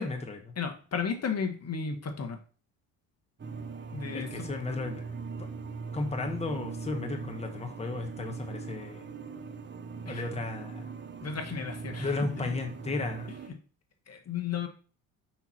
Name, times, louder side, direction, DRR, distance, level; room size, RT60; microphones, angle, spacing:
voice 1, 0.0-0.4 4.1-5.0 5.9-9.1 10.1-10.9 12.0-13.3, left 3 dB, 15° left, 3 dB, 1.3 m, -34 dB
voice 2, 0.5-2.4 3.9-4.5 10.0-10.3 11.2-12.6 13.5-13.6 14.1-14.7, left 6 dB, 40° left, 4 dB, 1.4 m, -34 dB
sound 1, 3.4-13.5, right 5 dB, 25° right, 1.0 m, -40 dB
5.7 x 4.6 x 4.3 m, 0.39 s
hypercardioid pair, 60°, 41 cm